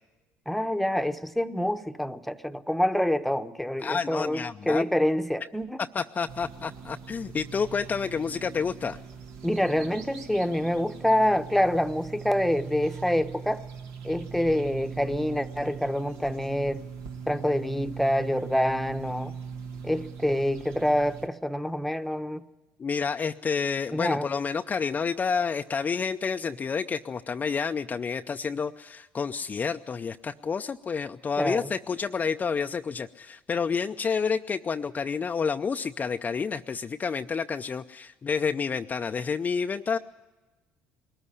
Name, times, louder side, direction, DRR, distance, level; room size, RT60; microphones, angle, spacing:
voice 1, 0.5-5.8 9.4-13.6 14.0-16.8 17.3-19.4 19.8-22.4 23.9-24.3 31.4-31.7, equal, ahead, 8 dB, 1.0 m, -26 dB
voice 2, 3.8-4.8 5.8-9.0 22.8-40.0, left 5 dB, 35° left, 7 dB, 0.6 m, -29 dB
sound 1, 6.3-21.3, right 6 dB, 75° right, 1.8 m, -41 dB
21.0 x 13.5 x 9.8 m, 1.2 s
supercardioid pair, 75°, 5 cm